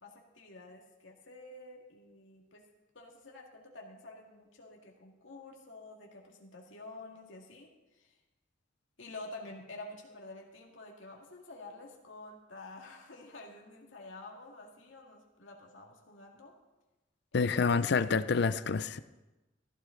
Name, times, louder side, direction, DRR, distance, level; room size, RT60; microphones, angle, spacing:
voice 1, 0.0-2.6 2.9-8.2 9.0-16.6 17.3-17.9, left 2 dB, 85° left, 0 dB, 2.0 m, -49 dB
voice 2, 17.3-19.0, left 5 dB, 60° left, 14 dB, 0.5 m, -28 dB
15.5 x 14.5 x 3.9 m, 1.1 s
head